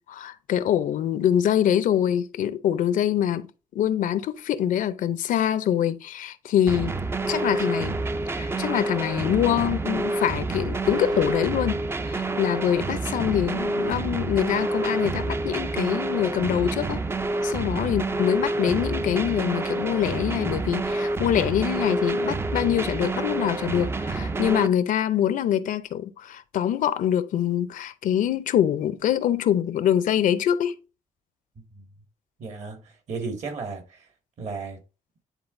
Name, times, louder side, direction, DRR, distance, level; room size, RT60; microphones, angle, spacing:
voice 1, 0.0-7.0 7.3-8.0 8.3-11.8 12.1-17.0 17.4-30.8, left 10 dB, 80° left, 0.6 m, -24 dB
sound 1, 6.7-24.7, right 2 dB, 20° right, 0.4 m, -28 dB
sound 2, 10.8-11.4, right 5 dB, 75° right, 0.9 m, -40 dB
voice 2, 32.4-34.1 34.4-34.8, right 4 dB, 55° right, 1.8 m, -34 dB
10.0 x 3.8 x 2.6 m
cardioid pair, 130°, 14 cm